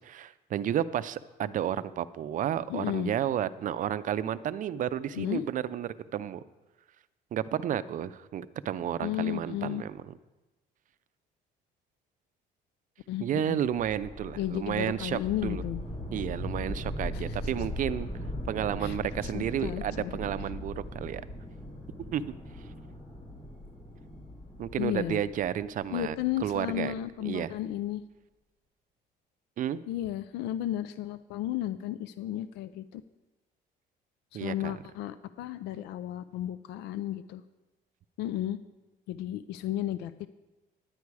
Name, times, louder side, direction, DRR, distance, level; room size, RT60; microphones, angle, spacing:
voice 1, 0.0-6.4 7.3-10.1 13.2-15.6 16.1-18.1 18.5-21.2 22.1-22.3 24.6-26.9 27.2-27.5 29.6-29.8 34.3-34.7, right 10 dB, 50° right, 14 dB, 0.5 m, -32 dB
voice 2, 2.7-3.1 5.1-5.5 9.0-9.8 13.1-13.6 14.4-15.8 17.1-17.4 18.8-19.0 19.2-20.1 24.8-25.2 25.9-28.0 29.9-33.0 34.3-37.4 38.2-38.6 39.1-40.3, left 13 dB, 90° left, 14 dB, 0.4 m, -33 dB
sound 1, 13.7-26.8, left 1 dB, 35° left, 3.0 m, -39 dB
10.5 x 9.7 x 4.7 m, 1.1 s
cardioid pair, 110°, 17 cm